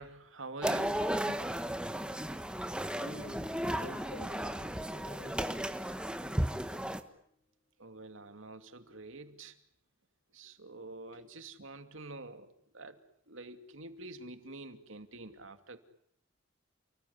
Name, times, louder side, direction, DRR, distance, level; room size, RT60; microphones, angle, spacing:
voice 1, 0.0-1.4 7.8-9.6 10.3-13.0 13.3-15.8, right 2 dB, 80° right, 8 dB, 2.7 m, -47 dB
sound 1, 0.6-7.0, equal, 5° right, 1.3 m, -34 dB
voice 2, 3.0-3.4 3.7-5.7 11.1-11.2, left 1 dB, 85° left, 7 dB, 6.7 m, -50 dB
sound 2, 3.1-5.7, left 1 dB, 30° left, 5.4 m, -57 dB
29.5 x 20.0 x 9.7 m, 0.71 s
head